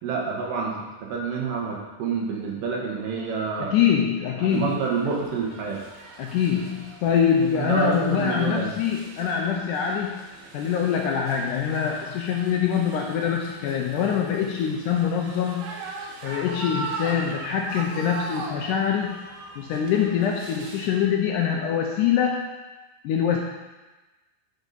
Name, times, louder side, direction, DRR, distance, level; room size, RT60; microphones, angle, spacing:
voice 1, 0.0-3.7 4.4-5.8 7.5-8.7, right 5 dB, 75° right, -1 dB, 2.6 m, -28 dB
voice 2, 3.6-4.8 6.2-10.2 10.5-15.7 16.2-19.2 19.6-22.4 23.0-23.4, left 8 dB, 80° left, 1 dB, 1.9 m, -24 dB
sound 1, 4.5-20.9, right 3 dB, 90° right, 2.8 m, -40 dB
8.7 x 4.1 x 5.4 m, 1.2 s
omnidirectional pair, 4.1 m